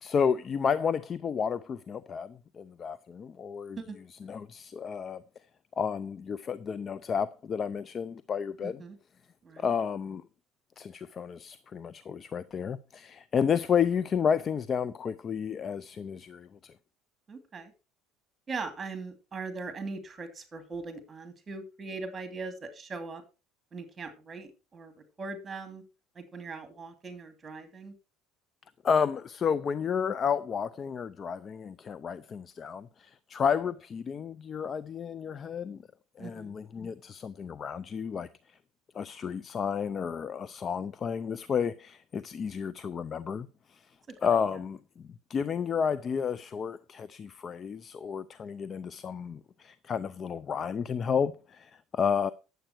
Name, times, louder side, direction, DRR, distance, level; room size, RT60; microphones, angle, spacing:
voice 1, 0.0-3.8 4.1-5.2 5.8-8.8 9.6-10.2 10.8-16.7 28.8-35.8 36.2-38.6 38.9-52.3, left 7 dB, 35° left, 0.5 m, -31 dB
voice 2, 8.6-9.0 9.4-9.7 17.3-17.7 18.5-23.2 23.7-24.9 25.2-25.8 26.1-27.9 36.2-36.5, right 4 dB, 25° right, 2.6 m, -40 dB
10.0 x 7.9 x 4.5 m
supercardioid pair, 100°, 0 cm